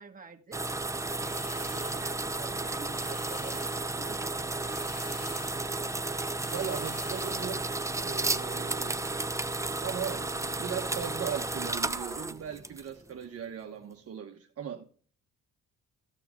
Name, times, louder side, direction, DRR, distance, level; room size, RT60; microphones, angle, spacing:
voice 1, 0.0-4.5, right 5 dB, 25° right, 1.6 m, -49 dB
sound 1, 0.5-13.1, right 2 dB, 10° right, 0.6 m, -33 dB
sound 2, 1.1-2.2 2.9-4.0 4.6-5.8 6.4-7.6, left 8 dB, 55° left, 1.0 m, -49 dB
voice 2, 6.5-9.0 9.8-14.8, right 8 dB, 50° right, 1.2 m, -38 dB
14.5 x 5.8 x 3.8 m
cardioid pair, 90°, 30 cm